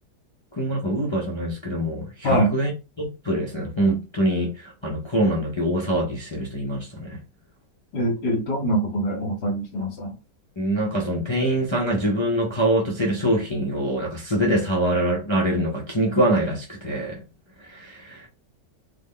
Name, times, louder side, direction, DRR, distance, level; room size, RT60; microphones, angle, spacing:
voice 1, 0.6-2.7 3.0-7.2 10.6-17.2 17.6-18.3, right 1 dB, 50° left, 0.3 m, -24 dB
voice 2, 2.2-2.5 7.9-10.1, right 1 dB, 70° left, 1.4 m, -24 dB
3.6 x 2.1 x 3.6 m
omnidirectional pair, 1.9 m